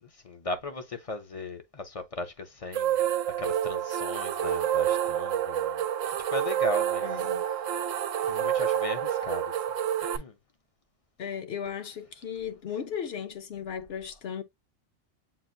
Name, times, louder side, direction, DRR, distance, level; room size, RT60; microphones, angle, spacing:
voice 1, 0.0-3.0 3.4-7.2 8.2-9.5 10.1-10.4, left 2 dB, 40° left, 0.6 m, -37 dB
sound 1, 2.7-10.2, right 10 dB, 85° right, 1.0 m, -28 dB
voice 2, 7.0-7.4 11.2-14.4, left 8 dB, 60° left, 0.9 m, -36 dB
7.5 x 2.5 x 2.6 m
omnidirectional pair, 1.3 m